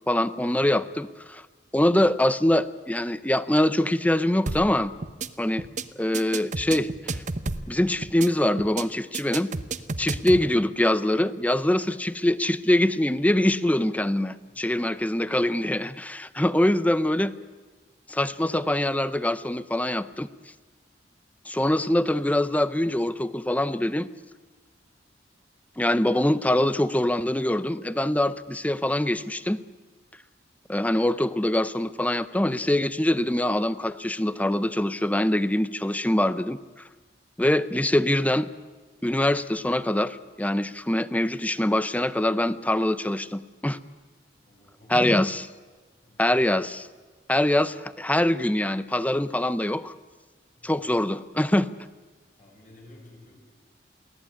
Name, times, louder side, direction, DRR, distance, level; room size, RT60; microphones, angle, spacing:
voice 1, 0.1-1.4 1.7-4.9 5.4-5.7 6.0-7.2 7.7-9.5 10.0-17.3 18.1-20.3 21.5-24.1 25.8-29.6 30.7-36.6 37.4-38.5 39.0-43.8 44.9-45.5 46.2-46.9 47.3-49.9 50.6-51.7, left 1 dB, 10° left, 15 dB, 0.7 m, -24 dB
sound 1, 4.5-4.7 5.0-5.3 5.6-5.8 6.1-7.7 8.0-8.3 8.6-8.8 9.1-10.4, right 3 dB, 45° right, 0.9 m, -30 dB
voice 2, 14.4-14.9 44.4-45.2 46.0-46.4 50.6-50.7 52.4-53.5, left 1 dB, 45° left, -1 dB, 7.8 m, -53 dB
23.0 x 16.5 x 9.8 m, 1.3 s
head